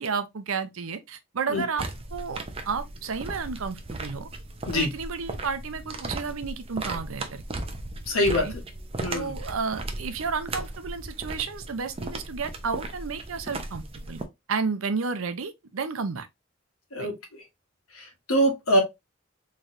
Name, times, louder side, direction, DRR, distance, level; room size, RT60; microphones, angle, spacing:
voice 1, 0.0-1.8 2.1-4.3 4.7-7.6 8.3-8.5 9.1-14.2 14.5-16.3 17.0-17.1, right 5 dB, 80° right, 0.6 m, -32 dB
sound 1, 1.8-14.2, right 2 dB, 25° right, 0.5 m, -36 dB
voice 2, 8.1-8.5 9.0-9.3 16.9-17.1 17.9-18.8, equal, 90° left, 1.3 m, -23 dB
3.9 x 3.1 x 2.6 m
head